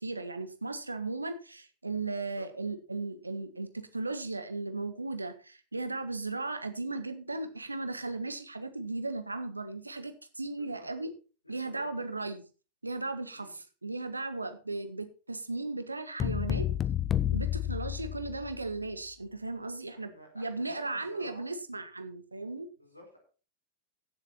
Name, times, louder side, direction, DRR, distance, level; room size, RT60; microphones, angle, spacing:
voice 1, 0.0-11.1 11.5-12.4 12.8-16.7 17.3-22.7, right 3 dB, 80° right, 9 dB, 1.4 m, -36 dB
voice 2, 11.4-12.3 13.3-13.5 17.9-18.2 19.9-21.5 22.8-23.2, right 1 dB, 85° left, 3 dB, 4.5 m, -52 dB
sound 1, 16.2-18.7, left 11 dB, 25° left, 0.6 m, -30 dB
15.5 x 7.4 x 4.3 m, 0.35 s
figure-of-eight pair, 90°, 0 cm